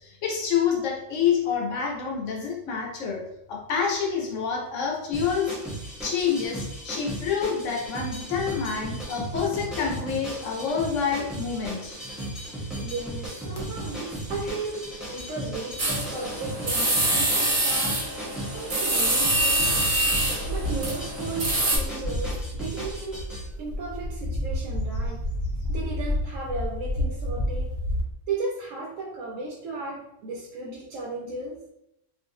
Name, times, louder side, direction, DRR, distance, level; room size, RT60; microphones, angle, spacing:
voice 1, 0.0-5.6 6.0-12.0, left 6 dB, 70° left, -1 dB, 1.0 m, -27 dB
sound 1, 5.1-23.4, right 1 dB, ahead, 0.5 m, -36 dB
voice 2, 12.8-18.0 18.5-19.7 20.5-23.2 23.6-25.3 25.7-27.7 28.3-31.6, right 3 dB, 80° right, -2 dB, 0.9 m, -35 dB
sound 2, 13.5-13.6 14.2-14.4 14.7-16.2 16.8-16.9 18.7-28.0, left 1 dB, 50° left, 0.6 m, -31 dB
sound 3, 15.8-21.8, right 1 dB, 45° right, 0.9 m, -25 dB
2.5 x 2.4 x 2.7 m, 0.80 s
omnidirectional pair, 1.4 m